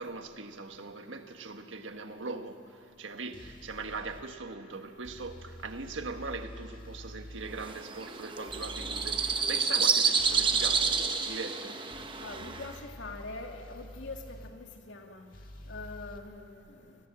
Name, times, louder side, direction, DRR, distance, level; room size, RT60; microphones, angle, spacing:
voice 1, 0.0-11.8, right 3 dB, 90° right, 1.5 m, -40 dB
sound 1, 3.3-4.2 5.0-7.7 8.5-9.4 10.2-11.1 11.9-14.5 15.3-16.2, equal, 45° left, 1.9 m, -47 dB
sound 2, 7.6-12.8, right 5 dB, 25° right, 1.0 m, -29 dB
voice 2, 12.2-15.3 15.7-17.0, left 3 dB, 80° left, 2.2 m, -43 dB
28.5 x 20.5 x 7.5 m
head